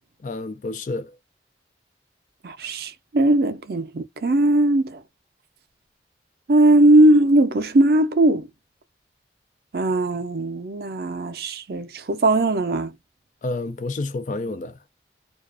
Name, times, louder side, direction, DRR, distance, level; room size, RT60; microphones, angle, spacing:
voice 1, 0.2-1.2 13.4-14.8, left 2 dB, 45° left, 0.3 m, -29 dB
voice 2, 2.4-5.0 6.5-8.5 9.7-12.9, right 1 dB, 60° right, 0.4 m, -19 dB
2.4 x 2.2 x 2.4 m
head